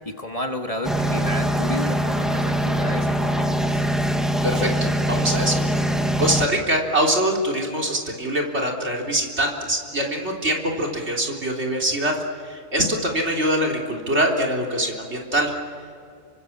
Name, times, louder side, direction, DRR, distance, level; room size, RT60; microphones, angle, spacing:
voice 1, 0.0-3.8, left 1 dB, 30° left, 3 dB, 1.9 m, -31 dB
sound 1, 0.8-6.5, right 1 dB, ahead, 1.5 m, -22 dB
voice 2, 5.1-5.6 6.2-12.2 12.4-15.5, right 1 dB, 60° right, 0 dB, 4.0 m, -23 dB
30.0 x 25.0 x 7.4 m, 2.3 s
omnidirectional pair, 1.3 m